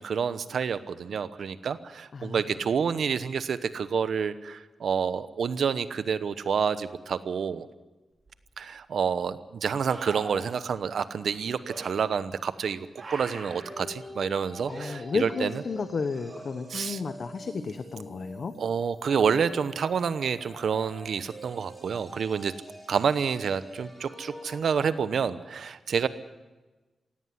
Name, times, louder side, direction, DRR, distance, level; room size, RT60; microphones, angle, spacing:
voice 1, 0.0-7.7 8.6-12.9 13.1-15.5 16.7-17.0 18.6-22.5 22.9-26.1, right 6 dB, 70° right, 13 dB, 0.9 m, -28 dB
voice 2, 2.1-2.4 2.9-3.0 14.7-18.5, left 4 dB, 50° left, 10 dB, 1.1 m, -32 dB
sound 1, 8.3-8.4 9.9-10.5 11.6-11.9 13.0-13.7 14.7-14.9 16.1-16.8 19.9-20.0, right 3 dB, 40° right, 5.4 m, -41 dB
sound 2, 13.3-24.6, equal, 5° right, 5.7 m, -46 dB
17.5 x 16.5 x 9.9 m, 1.2 s
wide cardioid pair, 130°, 0 cm